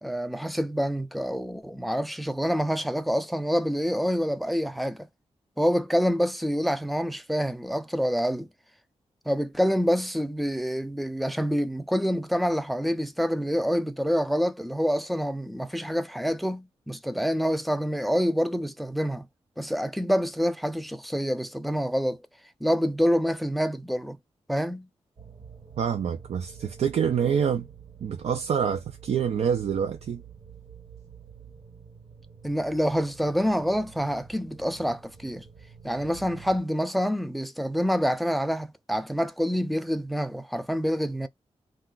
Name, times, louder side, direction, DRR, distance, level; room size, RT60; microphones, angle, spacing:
voice 1, 0.0-5.1 5.6-8.5 9.3-19.2 19.6-22.2 22.6-24.2 24.5-24.9 32.4-35.4 35.8-41.3, equal, ahead, 0.3 m, -27 dB
sound 1, 25.2-36.6, right 7 dB, 50° right, 1.0 m, -48 dB
voice 2, 25.8-27.7 28.0-30.2, right 7 dB, 70° right, 0.4 m, -26 dB
2.3 x 2.3 x 3.7 m
wide cardioid pair, 125°, 11 cm